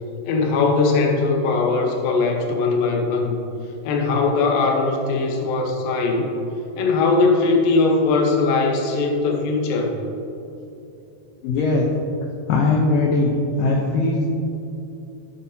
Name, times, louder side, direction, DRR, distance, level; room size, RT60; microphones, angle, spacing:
voice 1, 0.3-3.4 3.8-6.3 6.8-10.0, left 3 dB, 65° left, 2 dB, 2.6 m, -20 dB
voice 2, 11.4-11.8 12.5-13.3 13.6-14.3, left 3 dB, 85° left, 0 dB, 1.9 m, -19 dB
13.0 x 10.0 x 2.9 m, 2.9 s
omnidirectional pair, 5.0 m